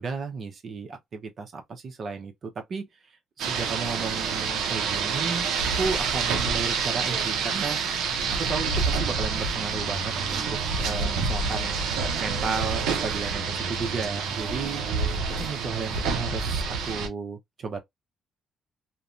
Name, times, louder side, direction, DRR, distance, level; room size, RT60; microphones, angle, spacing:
voice 1, 0.0-2.9 3.4-5.5 5.8-7.8 8.3-10.5 10.8-11.8 12.2-14.8 15.4-17.8, right 5 dB, 50° right, 0.8 m, -33 dB
Rain, 3.4-17.1, right 5 dB, 90° right, 0.6 m, -27 dB
2.7 x 2.2 x 2.5 m
cardioid pair, 90°, 0 cm